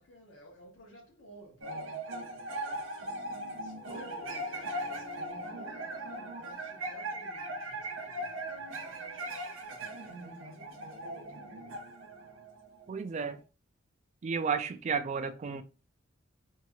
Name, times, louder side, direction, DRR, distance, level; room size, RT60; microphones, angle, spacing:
voice 1, 0.0-2.5 2.7-3.1 3.6-11.9, equal, 90° left, 0.9 m, -55 dB
sound 1, 1.6-13.2, right 1 dB, 80° right, 0.6 m, -39 dB
voice 2, 12.9-13.4 14.2-15.6, right 6 dB, 35° right, 0.3 m, -32 dB
2.8 x 2.3 x 2.9 m
head